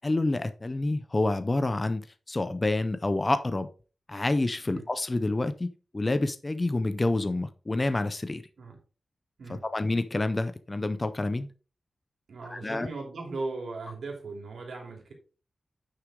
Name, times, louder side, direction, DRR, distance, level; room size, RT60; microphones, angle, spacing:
voice 1, 0.0-3.7 4.1-5.7 5.9-8.4 9.5-11.5 12.5-12.9, left 2 dB, 20° left, 11 dB, 0.5 m, -28 dB
voice 2, 12.3-15.1, right 3 dB, 75° right, 2 dB, 2.9 m, -38 dB
9.7 x 6.1 x 3.7 m, 0.36 s
wide cardioid pair, 180°, 0 cm